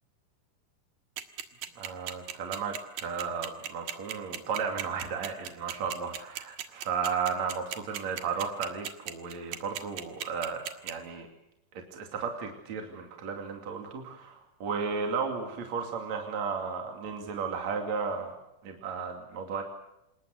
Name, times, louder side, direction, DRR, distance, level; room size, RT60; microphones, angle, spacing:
sound 1, 1.2-10.9, right 11 dB, 80° right, 3.2 m, -36 dB
voice 1, 1.8-11.3 11.8-18.3 18.6-19.6, right 5 dB, 55° right, 3 dB, 3.7 m, -34 dB
27.0 x 21.0 x 8.0 m, 0.87 s
omnidirectional pair, 3.9 m